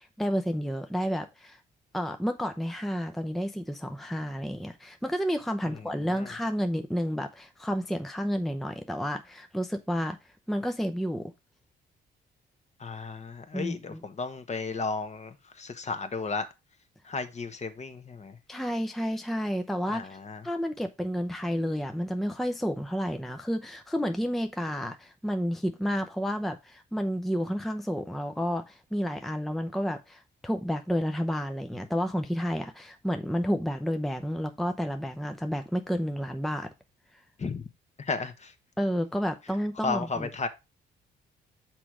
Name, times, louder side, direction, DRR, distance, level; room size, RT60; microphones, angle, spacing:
voice 1, 0.0-1.6 1.9-10.2 10.5-11.3 13.5-14.0 18.5-20.2 20.4-36.7 38.8-40.3, equal, ahead, 0.7 m, -30 dB
voice 2, 12.8-16.5 17.1-18.4 19.9-20.4 37.4-37.6 38.0-38.5 39.8-40.5, left 4 dB, 35° left, 1.2 m, -34 dB
6.1 x 4.7 x 4.9 m
cardioid pair, 90°, 20 cm